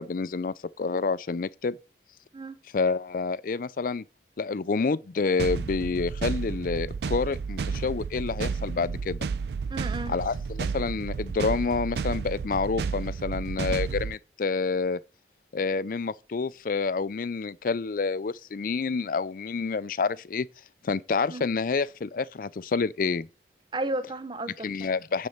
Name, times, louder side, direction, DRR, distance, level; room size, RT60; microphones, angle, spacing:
voice 1, 0.0-1.8 2.7-4.0 4.4-9.3 10.1-15.0 15.5-20.5 20.8-23.3 24.6-25.3, left 4 dB, 50° left, 0.4 m, -28 dB
sound 1, 5.4-14.2, right 5 dB, 65° right, 0.3 m, -32 dB
voice 2, 9.7-10.1 21.3-21.5 23.7-24.9, right 2 dB, 25° right, 0.8 m, -33 dB
9.4 x 4.3 x 7.3 m
head